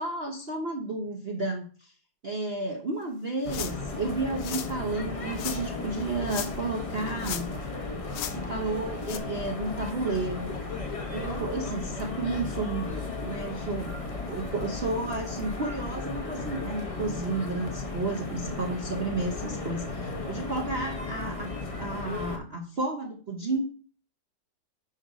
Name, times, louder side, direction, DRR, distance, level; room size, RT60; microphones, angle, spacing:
voice 1, 0.0-1.9 2.2-7.5 8.3-10.6 11.1-13.9 14.3-23.6, right 2 dB, 50° right, 2 dB, 0.7 m, -32 dB
Directly beneath the Eiffel Tower, 3.4-22.4, left 3 dB, 30° left, 0.6 m, -35 dB
sound 1, 3.5-3.9 4.4-4.7 5.4-5.6 6.2-6.7 7.0-7.7 8.1-8.4 9.0-9.2, left 11 dB, 85° left, 1.3 m, -36 dB
5.4 x 5.0 x 5.0 m, 0.41 s
omnidirectional pair, 1.9 m